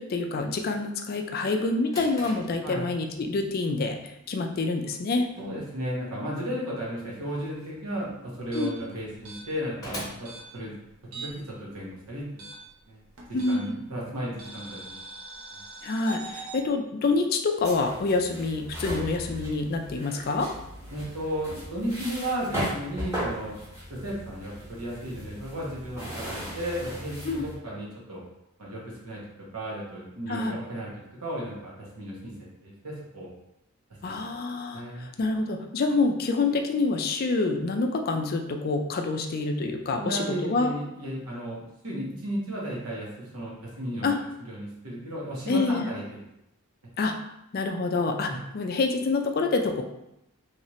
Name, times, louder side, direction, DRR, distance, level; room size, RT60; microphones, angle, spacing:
voice 1, 0.0-4.0 4.3-5.3 8.5-8.7 13.3-13.7 15.8-20.5 27.2-27.4 30.3-30.6 34.0-40.7 44.0-44.2 45.5-45.9 47.0-47.1 47.5-49.8, left 3 dB, 45° left, 4 dB, 0.3 m, -27 dB
Drawer open or close, 1.8-11.2, equal, 15° left, 0.8 m, -45 dB
voice 2, 5.4-10.7 11.1-12.4 12.9-13.0 13.3-15.0 15.5-15.6 20.9-23.6 23.9-28.2 28.6-29.2 29.5-30.9 31.2-32.3 32.6-33.3 34.0-34.1 34.7-35.1 39.9-44.1 44.5-46.0 48.2-48.4, equal, 90° right, -5 dB, 1.2 m, -34 dB
sound 1, 8.4-11.5 11.8-13.8 14.4-16.6, right 3 dB, 70° right, 0.8 m, -42 dB
sound 2, 17.6-27.6, equal, 10° right, 1.3 m, -37 dB
3.2 x 2.8 x 3.0 m, 0.85 s
head